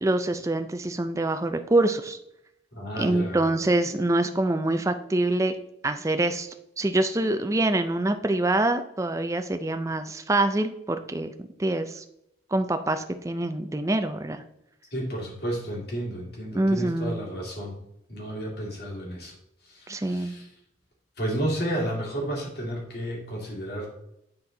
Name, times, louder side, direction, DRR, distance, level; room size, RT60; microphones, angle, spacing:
voice 1, 0.0-2.2 3.0-5.5 5.8-12.0 12.5-14.4 16.5-17.2 19.9-20.3, right 2 dB, 15° right, 8 dB, 0.4 m, -25 dB
voice 2, 2.7-3.5 14.9-17.7 18.1-19.3 19.6-20.5 21.2-23.9, right 1 dB, 55° left, -3 dB, 2.5 m, -32 dB
9.5 x 4.3 x 3.8 m, 0.79 s
head